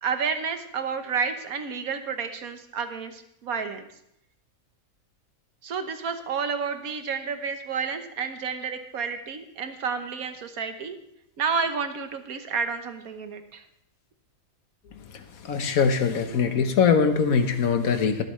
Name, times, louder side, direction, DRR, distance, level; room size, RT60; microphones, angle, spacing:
voice 1, 0.0-3.9 5.6-11.0 11.4-13.6, right 6 dB, 90° right, 8 dB, 1.5 m, -30 dB
voice 2, 15.4-18.2, left 6 dB, 85° left, 8 dB, 1.5 m, -22 dB
22.5 x 7.6 x 3.2 m, 0.76 s
omnidirectional pair, 1.5 m